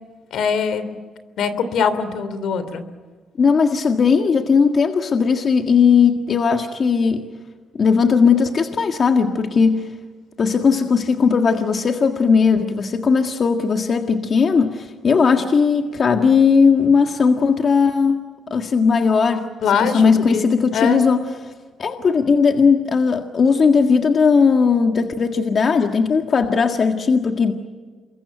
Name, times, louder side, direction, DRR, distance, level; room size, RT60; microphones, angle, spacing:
voice 1, 0.3-0.9 1.4-2.8 19.6-20.0 20.3-20.4 20.7-21.0, left 6 dB, 75° left, 12 dB, 2.9 m, -21 dB
voice 2, 3.4-7.3 7.7-9.9 10.4-18.2 18.5-19.5 19.8-21.2 21.8-27.5, left 5 dB, 45° left, 5 dB, 1.7 m, -17 dB
28.0 x 22.5 x 9.2 m, 1.4 s
cardioid pair, 90°, 0 cm